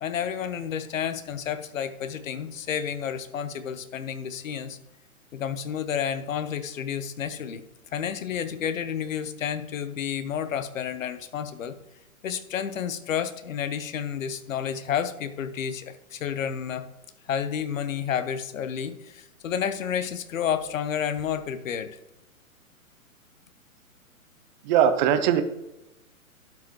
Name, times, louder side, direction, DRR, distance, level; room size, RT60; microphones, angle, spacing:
voice 1, 0.0-4.8 5.3-7.6 7.9-11.8 12.2-16.8 17.3-21.9, left 8 dB, 65° left, 12 dB, 0.9 m, -30 dB
voice 2, 24.6-25.4, right 9 dB, 35° right, 9 dB, 0.7 m, -20 dB
12.0 x 5.2 x 3.1 m, 0.92 s
hypercardioid pair, 125°, 43 cm